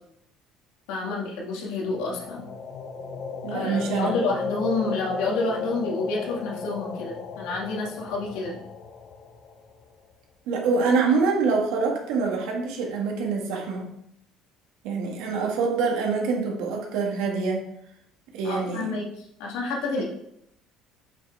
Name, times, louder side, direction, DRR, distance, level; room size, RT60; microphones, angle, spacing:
voice 1, 0.9-2.4 3.5-8.6 18.4-20.0, left 3 dB, 90° left, -1 dB, 1.9 m, -29 dB
sound 1, 1.8-9.9, left 4 dB, 40° left, 0.9 m, -35 dB
voice 2, 3.4-4.2 10.5-13.9 14.8-17.6 18.3-19.0, right 4 dB, 75° right, 1 dB, 1.8 m, -25 dB
7.8 x 6.2 x 3.4 m, 0.77 s
cardioid pair, 155°, 0 cm